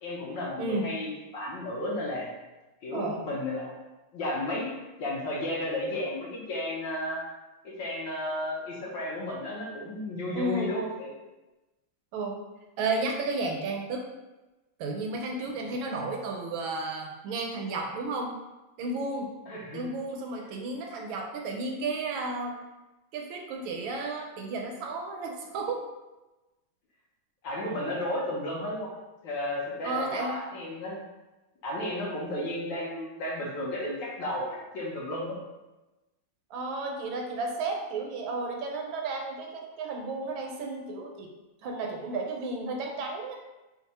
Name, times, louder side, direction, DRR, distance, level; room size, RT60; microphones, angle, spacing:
voice 1, 0.0-2.3 2.8-3.7 4.1-4.7 5.0-7.3 7.6-11.1 19.5-19.8 27.4-28.9 29.2-31.0 31.6-35.4, left 1 dB, 65° left, -4 dB, 1.4 m, -33 dB
voice 2, 0.6-0.9 2.9-3.2 10.3-10.8 12.1-12.4 12.8-14.1 14.8-18.4 18.8-19.3 19.7-22.6 23.1-25.8 29.8-30.4 36.5-41.3 41.6-43.4, right 3 dB, 75° right, 1 dB, 1.3 m, -33 dB
3.6 x 2.3 x 4.0 m, 1.1 s
omnidirectional pair, 2.3 m